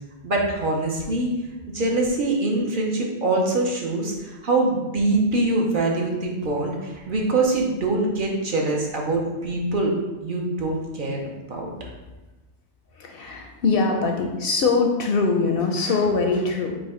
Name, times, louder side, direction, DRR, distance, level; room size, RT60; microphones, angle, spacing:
voice 1, 0.2-1.3 1.7-9.9 10.2-11.2 11.5-11.7, right 2 dB, 50° right, -1 dB, 0.8 m, -24 dB
voice 2, 12.9-16.8, left 4 dB, 65° left, 2 dB, 0.7 m, -23 dB
4.9 x 2.2 x 4.8 m, 1.1 s
omnidirectional pair, 1.2 m